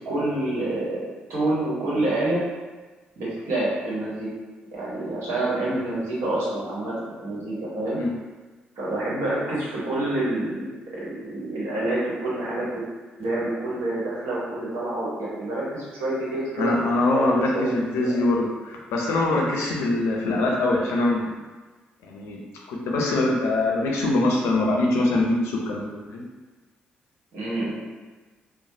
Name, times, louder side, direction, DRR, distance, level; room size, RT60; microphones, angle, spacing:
voice 1, 0.0-1.0 1.3-2.4 3.2-4.3 4.7-8.0 8.8-12.8 13.2-18.1 27.3-27.8, right 2 dB, 70° right, -8 dB, 1.1 m, -27 dB
voice 2, 16.6-21.3 22.0-22.4 22.7-26.2, left 2 dB, 70° left, -1 dB, 0.5 m, -23 dB
3.2 x 2.0 x 2.7 m, 1.3 s
hypercardioid pair, 40°, 5 cm